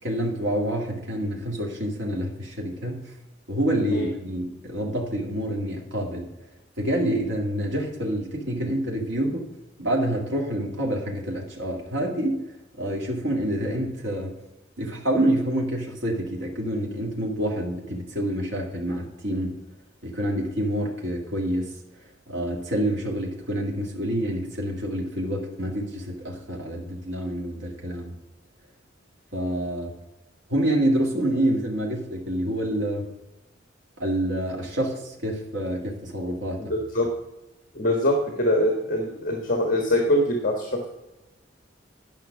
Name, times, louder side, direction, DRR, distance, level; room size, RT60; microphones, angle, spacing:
voice 1, 0.0-3.1 3.5-6.3 6.8-9.5 9.8-12.4 12.8-14.3 14.8-19.6 20.0-21.7 22.3-28.1 29.3-29.9 30.5-33.1 34.0-36.6, right 1 dB, 80° right, -1 dB, 2.2 m, -27 dB
voice 2, 36.6-37.1 37.7-40.9, left 1 dB, 45° left, 2 dB, 1.4 m, -23 dB
10.5 x 5.7 x 6.1 m, 0.97 s
head